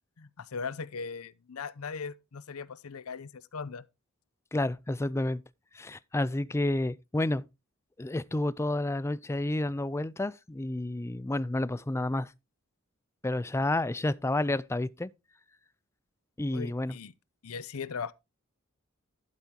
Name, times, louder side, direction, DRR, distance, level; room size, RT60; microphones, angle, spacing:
voice 1, 0.2-3.8 16.5-17.1 17.4-18.1, left 5 dB, 85° left, 0.6 m, -39 dB
voice 2, 4.5-5.4 5.7-7.5 8.0-12.3 13.2-15.1 16.4-17.0, left 1 dB, 10° left, 0.4 m, -30 dB
11.5 x 8.4 x 2.9 m
head